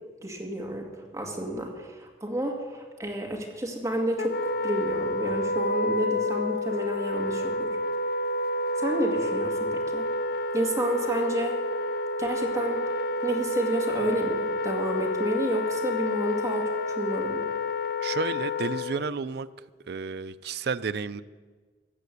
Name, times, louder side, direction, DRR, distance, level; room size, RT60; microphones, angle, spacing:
voice 1, 0.2-7.8 8.8-10.0 10.5-11.6 12.2-12.8 13.2-17.5, right 1 dB, 20° right, 0 dB, 2.1 m, -30 dB
Wind instrument woodwind instrument, 4.2-19.1, left 2 dB, 60° left, 0.5 m, -29 dB
voice 2, 18.0-19.5 19.9-21.2, right 5 dB, 60° right, 13 dB, 0.5 m, -31 dB
14.5 x 8.3 x 8.4 m, 1.4 s
head